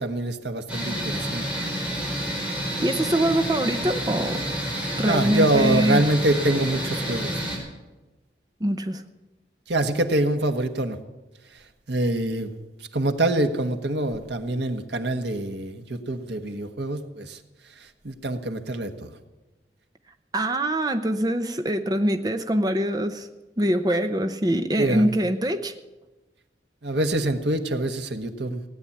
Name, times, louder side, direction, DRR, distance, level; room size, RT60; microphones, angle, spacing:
voice 1, 0.0-1.4 5.0-7.4 9.7-11.0 11.9-12.5 12.9-17.4 17.8-19.1 24.8-25.2 26.8-28.6, right 1 dB, 80° right, 7 dB, 1.3 m, -25 dB
sound 1, 0.7-7.6, equal, 5° right, 4.8 m, -29 dB
voice 2, 2.8-4.4 5.0-6.0 8.6-9.0 20.3-23.3 23.6-25.7, right 1 dB, 20° right, 7 dB, 0.7 m, -24 dB
17.5 x 9.7 x 8.6 m, 1.1 s
head